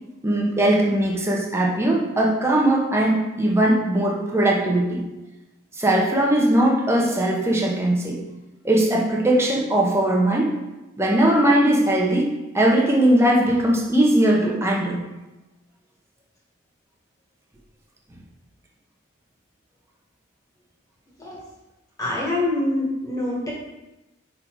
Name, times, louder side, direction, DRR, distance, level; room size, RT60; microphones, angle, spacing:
voice 1, 0.2-5.0 5.8-8.2 8.6-10.5 11.0-12.3 12.5-15.0, right 1 dB, 10° right, -2 dB, 0.9 m, -19 dB
voice 2, 22.0-23.5, left 1 dB, 15° left, -5 dB, 1.5 m, -25 dB
5.7 x 3.9 x 4.6 m, 1.0 s
head